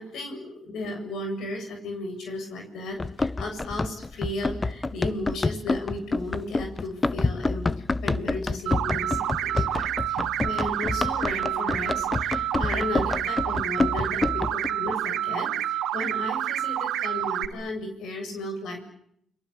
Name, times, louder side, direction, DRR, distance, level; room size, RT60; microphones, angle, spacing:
voice 1, 0.0-7.7 8.0-18.9, left 2 dB, 75° left, 3 dB, 7.6 m, -35 dB
Run, 3.0-14.7, left 3 dB, 20° left, 1.0 m, -28 dB
sound 1, 8.7-17.5, right 12 dB, 90° right, 2.1 m, -28 dB
29.5 x 23.0 x 8.3 m, 0.71 s
cardioid pair, 90°, 0 cm